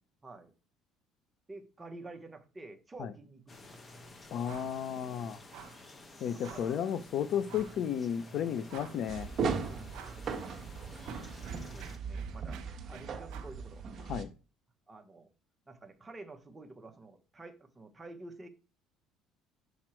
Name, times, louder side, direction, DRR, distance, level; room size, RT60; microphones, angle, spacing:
voice 1, 0.2-0.5 1.5-3.9 6.3-6.8 8.7-8.9 9.6-10.0 11.4-13.9 14.9-15.3 15.7-18.5, right 2 dB, 10° right, 4 dB, 0.8 m, -49 dB
sound 1, 3.5-12.0, left 1 dB, 20° left, 0.7 m, -51 dB
voice 2, 4.3-5.4 6.2-9.3 14.1-14.3, left 9 dB, 45° left, 13 dB, 0.4 m, -33 dB
sound 2, 4.4-4.8 5.1-5.2 5.5-5.9 6.4-6.8 7.5-7.8 8.3-8.4 8.7-9.2 9.9-10.3 10.6-13.6, right 8 dB, 70° right, 0.9 m, -51 dB
sound 3, 9.1-14.2, right 5 dB, 30° right, 1.0 m, -38 dB
6.1 x 4.8 x 4.4 m, 0.35 s
cardioid pair, 165°, 0 cm